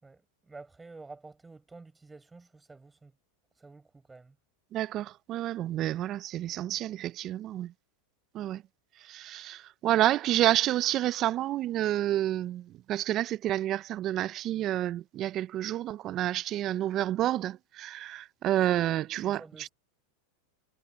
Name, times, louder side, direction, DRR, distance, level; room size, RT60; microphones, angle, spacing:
voice 1, 0.0-3.1 3.6-4.4 19.2-19.7, right 3 dB, 10° right, 7.3 m, -50 dB
voice 2, 4.7-7.7 8.3-8.6 9.0-19.7, right 13 dB, 40° right, 0.7 m, -29 dB
hypercardioid pair, 105°, 0 cm